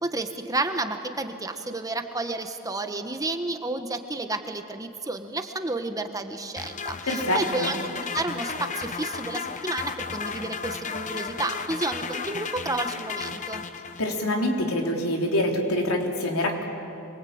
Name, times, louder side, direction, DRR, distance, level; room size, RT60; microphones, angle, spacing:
voice 1, 0.0-13.6, right 2 dB, 15° right, 7 dB, 1.3 m, -31 dB
sound 1, 6.6-14.3, left 5 dB, 35° left, 0.9 m, -34 dB
voice 2, 7.1-7.7 14.0-16.6, left 1 dB, 90° left, 1 dB, 3.5 m, -25 dB
25.0 x 23.0 x 8.8 m, 2.7 s
head